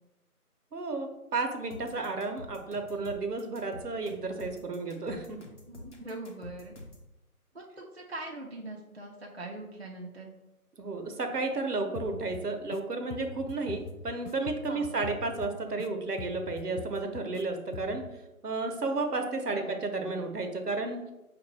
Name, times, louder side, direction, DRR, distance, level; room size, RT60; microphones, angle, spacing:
voice 1, 0.7-5.4 10.8-18.0 18.4-21.0, right 3 dB, 85° right, 5 dB, 0.9 m, -32 dB
sound 1, 1.7-7.1, left 1 dB, 50° left, 0.8 m, -47 dB
voice 2, 5.7-6.8 7.5-10.3 14.7-14.9 19.5-19.7, right 2 dB, 45° right, 0 dB, 0.4 m, -42 dB
sound 2, 11.9-12.8 13.1-15.9 16.2-17.4 17.7-18.1, left 5 dB, 80° left, 0.5 m, -43 dB
5.4 x 2.6 x 3.1 m, 0.99 s
figure-of-eight pair, 165°, 46 cm